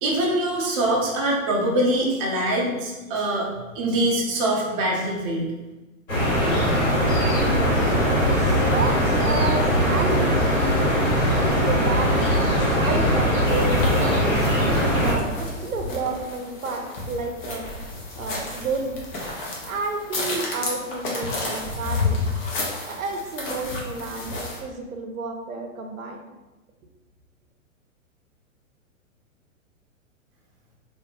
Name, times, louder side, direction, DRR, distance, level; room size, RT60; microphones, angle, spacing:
voice 1, 0.0-3.5 3.7-5.5, right 1 dB, 25° right, -3 dB, 0.5 m, -23 dB
sound 1, 6.1-15.1, equal, 75° left, 1.2 m, -20 dB
voice 2, 8.4-10.3 11.6-12.3 12.7-14.5 15.0-17.7 18.1-19.0 19.7-22.2 22.9-26.2, right 3 dB, 85° right, 3 dB, 0.5 m, -30 dB
sound 2, 13.5-24.6, left 3 dB, 40° left, 0.7 m, -31 dB
2.4 x 2.1 x 2.9 m, 1.1 s
figure-of-eight pair, 110°, 40 cm